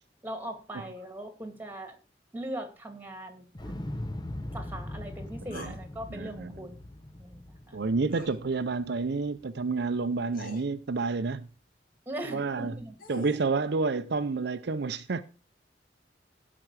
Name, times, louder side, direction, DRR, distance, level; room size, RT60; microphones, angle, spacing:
voice 1, 0.2-2.0 2.3-3.7 4.5-6.9 7.2-7.8 12.1-13.0, right 1 dB, 10° right, 2.3 m, -40 dB
Explosion, 3.5-9.6 9.9-10.0, left 1 dB, 25° left, 0.8 m, -40 dB
sound 1, 5.5-5.8 8.1-8.4 9.7-9.8 10.3-10.6 12.6-13.5, left 1 dB, 55° left, 2.2 m, -44 dB
voice 2, 6.1-6.5 7.7-11.5 12.3-12.7 13.1-15.2, right 4 dB, 65° right, 0.6 m, -29 dB
16.5 x 5.9 x 4.8 m
head